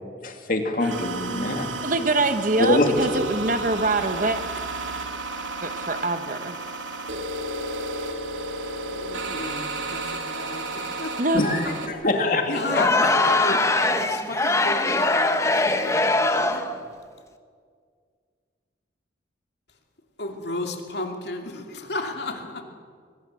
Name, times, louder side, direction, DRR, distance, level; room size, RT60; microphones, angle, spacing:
voice 1, 0.2-1.7 2.6-2.9 11.3-12.6 13.0-13.1 13.5-13.6, left 2 dB, 45° left, 2.6 m, -24 dB
sound 1, 0.8-11.9, right 2 dB, 90° right, 2.5 m, -32 dB
voice 2, 1.8-4.4 5.6-6.5 11.2-11.4, right 2 dB, 45° right, 1.2 m, -24 dB
voice 3, 8.9-11.2 12.5-13.6 14.0-16.7 20.2-22.6, left 2 dB, 60° left, 2.7 m, -33 dB
Crowd, 12.6-16.8, left 2 dB, 15° left, 1.0 m, -22 dB
24.0 x 20.5 x 7.7 m
head